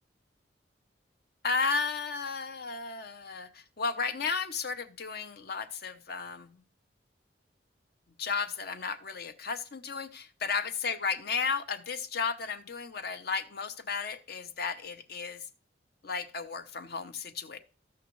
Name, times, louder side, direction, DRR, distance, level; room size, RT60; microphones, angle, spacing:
voice 1, 1.4-6.5 8.2-15.4 16.0-17.6, left 5 dB, 60° left, 10 dB, 0.8 m, -34 dB
14.5 x 6.0 x 3.1 m, 0.39 s
head